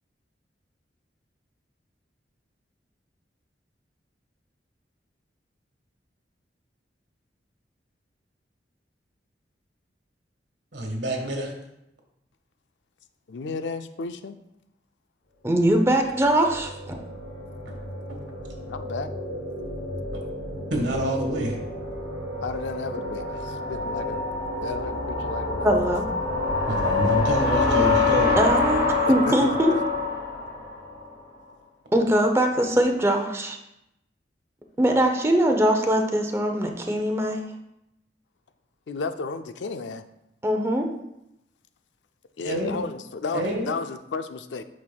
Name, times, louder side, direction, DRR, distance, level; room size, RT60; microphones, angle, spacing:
voice 1, 10.7-11.5 17.6-17.8 20.7-21.5 26.7-28.4 42.4-42.8 43.3-43.7, right 1 dB, 75° right, 2 dB, 1.5 m, -27 dB
voice 2, 13.3-14.4 18.7-19.1 22.4-24.2 24.5-25.7 29.3-29.8 38.9-40.0 42.4-44.6, left 4 dB, 80° left, 9 dB, 0.4 m, -33 dB
voice 3, 15.4-17.0 25.6-26.0 28.4-29.7 31.9-33.6 34.8-37.5 40.4-40.9, right 1 dB, 15° right, 3 dB, 0.6 m, -22 dB
sound 1, 15.9-31.1, left 3 dB, 65° left, 2.5 m, -27 dB
8.6 x 6.1 x 2.3 m, 0.85 s
head